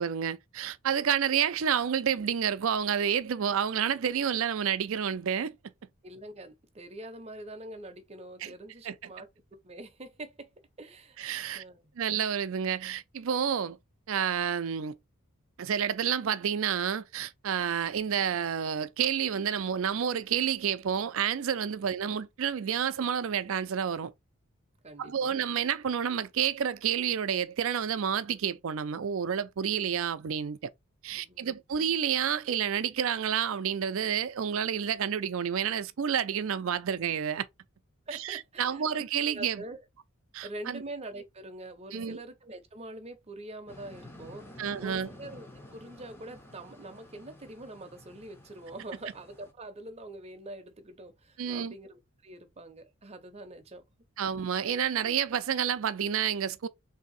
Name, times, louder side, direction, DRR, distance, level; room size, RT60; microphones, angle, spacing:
voice 1, 0.0-5.6 8.4-8.5 8.8-9.0 11.2-11.6 12.0-13.8 14.1-15.0 15.6-24.1 25.0-30.7 31.0-37.5 38.1-39.6 40.3-40.8 41.9-42.2 44.6-45.1 51.4-51.7 54.2-56.7, right 8 dB, 65° right, 0.4 m, -29 dB
voice 2, 6.0-9.3 9.6-10.5 10.8-11.2 11.5-11.9 24.8-25.3 31.1-31.6 38.1-38.8 39.3-39.8 40.4-45.5 45.7-53.8, right 1 dB, 30° right, 0.6 m, -44 dB
sound 1, 43.7-49.5, left 1 dB, 10° left, 0.6 m, -51 dB
3.4 x 2.7 x 4.0 m
head